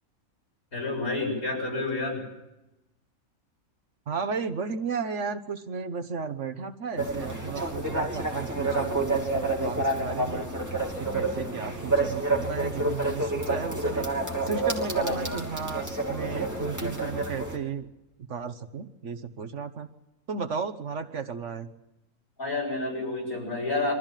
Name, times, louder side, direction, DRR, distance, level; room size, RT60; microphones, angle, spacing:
voice 1, 0.7-2.2 22.4-23.9, left 2 dB, 80° left, -1 dB, 8.3 m, -29 dB
voice 2, 4.1-10.4 11.0-14.1 14.5-17.9 18.3-19.9 20.3-21.7, right 5 dB, 55° right, 8 dB, 1.4 m, -34 dB
sound 1, 7.0-17.6, right 2 dB, 10° right, 2.9 m, -29 dB
23.5 x 14.0 x 9.0 m, 0.93 s
omnidirectional pair, 1.5 m